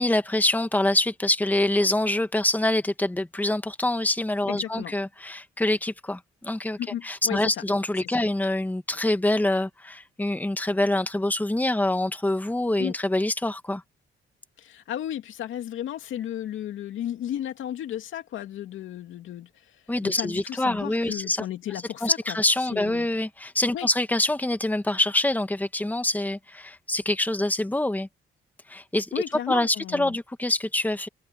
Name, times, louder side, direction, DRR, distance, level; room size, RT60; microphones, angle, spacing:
voice 1, 0.0-6.8 7.0-13.8 19.9-21.4 22.0-28.1 28.7-31.1, left 1 dB, 10° left, 1.7 m, -25 dB
voice 2, 4.5-4.9 6.8-7.6 8.0-8.2 12.8-12.9 14.6-22.4 22.7-23.1 23.7-23.9 29.1-30.2, left 11 dB, 80° left, 2.6 m, -34 dB
open air
cardioid pair, 90°, 20 cm